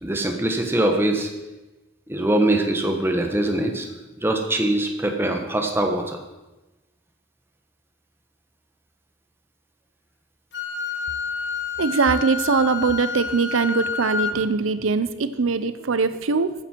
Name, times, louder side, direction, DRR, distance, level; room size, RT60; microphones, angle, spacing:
voice 1, 0.0-1.3 2.1-3.9 4.2-6.2, right 1 dB, 10° right, 3 dB, 1.2 m, -22 dB
Wind instrument woodwind instrument, 10.5-14.4, left 5 dB, 55° left, 1.3 m, -29 dB
voice 2, 11.8-16.5, right 4 dB, 80° right, 12 dB, 0.6 m, -22 dB
14.0 x 9.5 x 4.5 m, 1.1 s
head